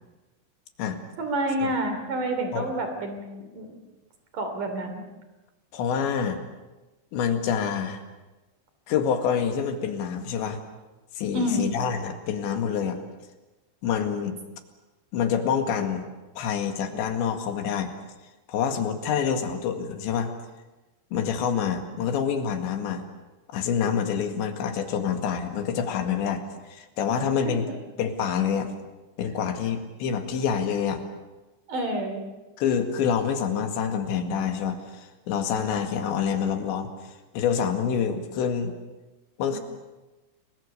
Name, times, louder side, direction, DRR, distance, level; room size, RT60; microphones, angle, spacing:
voice 1, 1.2-3.3 3.5-3.8 4.3-5.0 11.3-11.7 27.5-27.7 31.7-32.3 39.5-39.6, right 1 dB, 50° right, 6 dB, 4.2 m, -28 dB
voice 2, 5.7-6.4 7.1-8.0 8.9-10.6 11.2-13.0 13.8-14.4 15.1-16.1 16.4-17.9 18.5-20.3 21.1-23.1 23.5-26.4 26.7-27.6 28.0-28.7 29.2-31.0 32.6-36.9 37.3-38.7 39.4-39.6, left 7 dB, 90° left, 6 dB, 4.3 m, -27 dB
30.0 x 22.5 x 6.8 m, 1.1 s
omnidirectional pair, 5.1 m